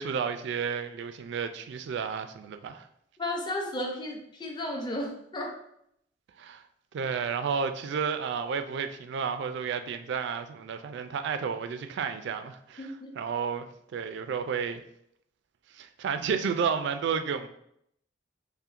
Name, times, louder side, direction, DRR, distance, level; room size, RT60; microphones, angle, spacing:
voice 1, 0.0-2.9 6.4-6.6 6.9-12.9 13.2-14.8 15.7-17.5, right 6 dB, 65° right, 9 dB, 0.3 m, -31 dB
voice 2, 3.2-5.6 12.8-13.1, left 1 dB, 25° left, 1 dB, 0.5 m, -34 dB
5.5 x 2.1 x 2.5 m, 0.74 s
head